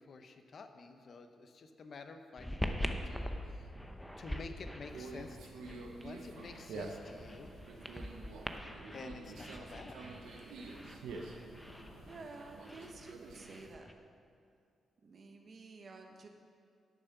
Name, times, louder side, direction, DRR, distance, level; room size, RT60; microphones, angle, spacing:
voice 1, 0.0-3.7 4.2-7.5 8.9-10.0, left 4 dB, 60° left, 7 dB, 0.8 m, -50 dB
sound 1, 2.4-13.9, equal, 10° left, 0.9 m, -44 dB
sound 2, 4.4-12.5, left 4 dB, 85° left, 0.9 m, -64 dB
Conversation, 4.9-13.7, right 3 dB, 85° right, 0.9 m, -48 dB
voice 2, 12.0-13.9 15.0-16.3, right 3 dB, 55° right, 4 dB, 1.0 m, -51 dB
10.5 x 6.5 x 5.9 m, 2.3 s
supercardioid pair, 55°, 0 cm